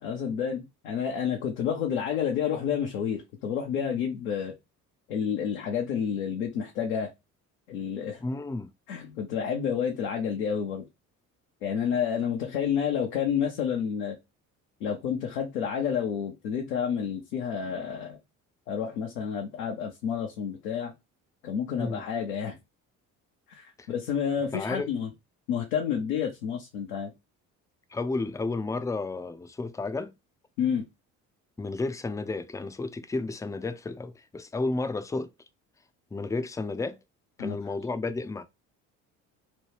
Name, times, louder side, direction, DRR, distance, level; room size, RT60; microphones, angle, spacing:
voice 1, 0.0-4.5 5.1-7.1 7.7-8.2 8.9-10.9 11.6-14.2 14.8-18.2 18.7-20.9 21.4-22.6 23.5-25.1 25.5-27.1 30.6-30.9 37.4-37.6, left 7 dB, 80° left, 0.8 m, -29 dB
voice 2, 8.2-8.7 21.8-22.0 23.8-23.9 24.5-24.9 27.9-30.1 31.6-35.3 36.1-37.0 37.4-38.4, left 3 dB, 10° left, 0.4 m, -32 dB
3.1 x 2.2 x 3.2 m
hypercardioid pair, 55°, 41 cm